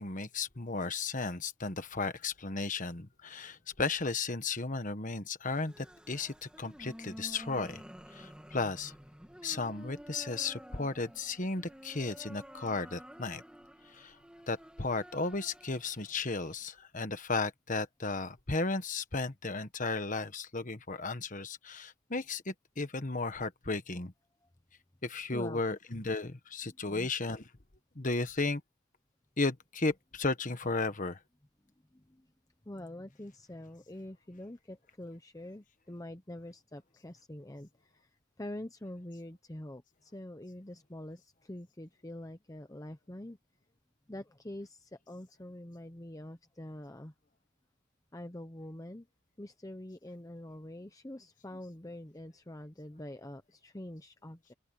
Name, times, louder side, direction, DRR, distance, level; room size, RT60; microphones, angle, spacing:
voice 1, 0.0-7.8 8.1-8.9 9.4-13.4 13.9-14.2 14.5-24.1 25.0-27.5 27.9-28.6 29.4-31.2 51.5-51.6, left 3 dB, 35° left, 1.4 m, -34 dB
sound 1, 5.4-16.7, equal, 5° right, 2.0 m, -51 dB
voice 2, 25.3-25.6 26.9-27.1 32.7-37.7 38.4-41.2 41.5-43.4 44.1-47.1 48.1-49.1 49.4-54.5, left 1 dB, 15° left, 0.8 m, -45 dB
open air
head